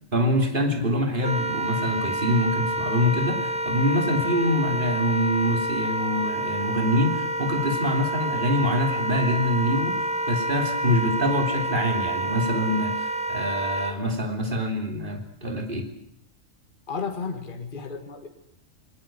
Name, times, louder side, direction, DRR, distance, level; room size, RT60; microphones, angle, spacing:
voice 1, 0.1-15.9, equal, 40° right, 4 dB, 3.4 m, -25 dB
Wind instrument woodwind instrument, 1.2-14.0, right 1 dB, 5° right, 1.4 m, -28 dB
voice 2, 16.9-18.3, left 5 dB, 40° left, 5 dB, 2.1 m, -33 dB
20.5 x 19.5 x 9.0 m, 0.72 s
omnidirectional pair, 1.4 m